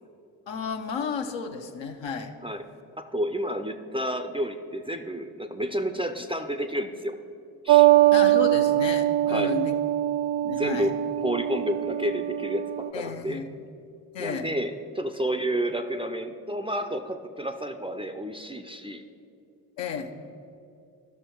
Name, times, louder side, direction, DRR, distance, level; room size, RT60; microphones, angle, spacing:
voice 1, 0.5-2.3 8.1-9.7 10.4-10.9 12.9-13.5 14.1-14.5 19.8-20.1, left 6 dB, 60° left, 4 dB, 1.0 m, -32 dB
voice 2, 3.0-7.2 7.6-7.9 9.2-9.6 10.4-13.4 14.2-19.0, equal, 10° right, 8 dB, 0.6 m, -30 dB
sound 1, 7.7-12.9, right 14 dB, 50° right, 0.6 m, -22 dB
13.0 x 6.3 x 4.6 m, 2.6 s
hypercardioid pair, 40°, 50 cm